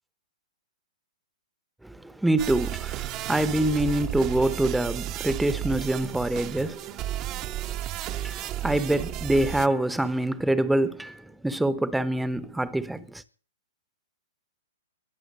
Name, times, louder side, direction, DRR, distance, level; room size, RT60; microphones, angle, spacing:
voice 1, 1.8-7.7 8.1-13.2, right 1 dB, 5° right, 1.0 m, -26 dB
sound 1, 2.4-9.7, right 13 dB, 30° right, 1.0 m, -33 dB
22.0 x 8.0 x 6.4 m
figure-of-eight pair, 115°, 0 cm